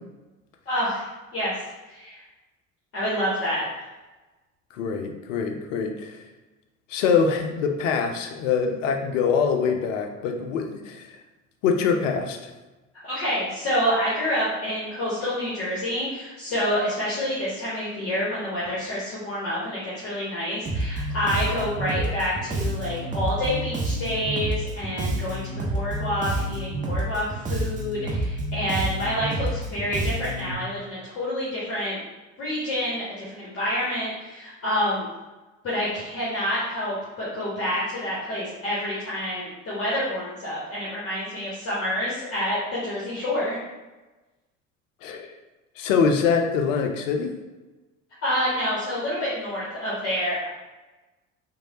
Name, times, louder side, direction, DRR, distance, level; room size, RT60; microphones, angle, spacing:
voice 1, 0.7-1.1 1.3-1.6 1.9-2.2 2.9-3.8 13.0-32.0 32.4-35.1 35.6-43.6 48.2-50.5, equal, 35° left, -8 dB, 0.9 m, -28 dB
voice 2, 4.7-6.2 6.9-11.2 11.6-12.5 45.0-45.3 45.8-47.3, left 6 dB, 70° left, 4 dB, 0.5 m, -24 dB
Bass guitar, 20.7-30.5, right 1 dB, 20° right, 0.5 m, -28 dB
3.0 x 2.1 x 2.7 m, 1.2 s
figure-of-eight pair, 65°, 40 cm